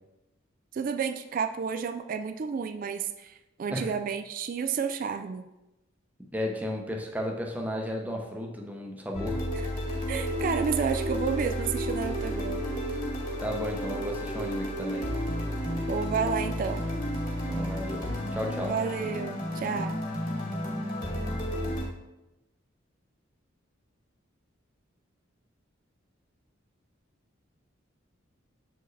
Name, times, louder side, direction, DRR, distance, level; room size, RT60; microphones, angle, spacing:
voice 1, 0.7-5.4 9.6-9.7 10.1-12.6 15.9-16.9 18.7-20.0, right 6 dB, 45° right, 7 dB, 0.3 m, -31 dB
voice 2, 6.3-9.4 13.4-15.1 17.5-18.7, equal, 10° right, 0 dB, 0.8 m, -34 dB
sound 1, 9.1-21.9, equal, 45° left, 2.1 m, -32 dB
7.5 x 4.6 x 3.3 m, 0.98 s
head